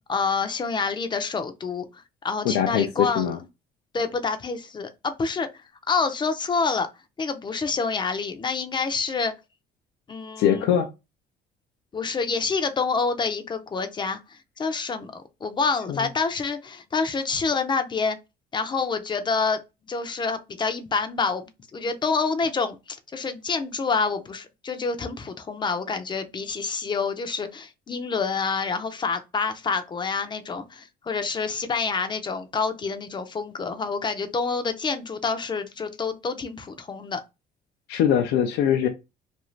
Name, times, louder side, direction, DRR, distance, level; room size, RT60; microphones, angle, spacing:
voice 1, 0.1-3.3 3.9-5.5 5.9-6.9 7.2-9.3 10.1-10.7 11.9-18.2 18.5-19.6 19.9-37.2, left 4 dB, 25° left, 0.5 m, -27 dB
voice 2, 2.4-3.4 10.4-10.9 15.9-16.1 37.9-38.9, left 9 dB, 85° left, 0.5 m, -22 dB
2.6 x 2.4 x 3.0 m
cardioid pair, 110°, 17 cm